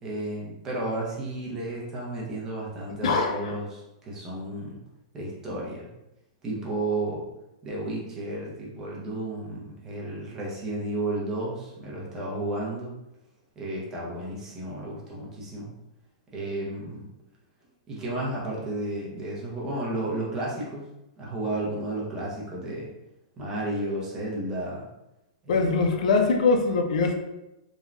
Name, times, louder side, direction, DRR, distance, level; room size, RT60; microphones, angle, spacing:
voice 1, 0.0-4.8 5.1-5.9 6.4-7.2 7.6-12.9 13.6-15.7 16.3-17.1 17.9-20.9 21.2-22.9 23.4-24.9 25.4-25.7, right 1 dB, 15° right, -5 dB, 0.5 m, -32 dB
voice 2, 3.0-3.5 25.5-27.1, left 4 dB, 65° left, 4 dB, 0.4 m, -22 dB
3.1 x 2.2 x 2.4 m, 0.93 s
supercardioid pair, 170°, 4 cm